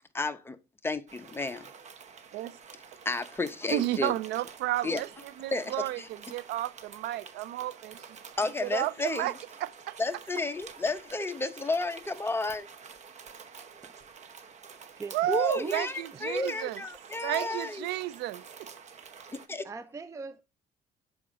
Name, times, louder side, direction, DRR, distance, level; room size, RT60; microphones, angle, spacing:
voice 1, 0.1-0.6 0.8-1.7 3.0-4.1 4.8-5.0 5.5-6.1 8.4-9.3 10.0-12.7 15.3-17.9 19.5-19.6, left 2 dB, 15° left, 0.8 m, -32 dB
sound 1, 1.1-19.5, right 6 dB, 45° right, 0.9 m, -49 dB
voice 2, 3.7-5.1 5.4-8.0 8.6-9.3 9.6-10.0 15.1-16.8 17.2-18.7, right 14 dB, 80° right, 0.5 m, -32 dB
voice 3, 15.0-15.9 16.3-16.7 17.4-17.5 19.6-20.4, right 4 dB, 20° right, 0.4 m, -40 dB
6.9 x 5.1 x 3.6 m
cardioid pair, 110°, 17 cm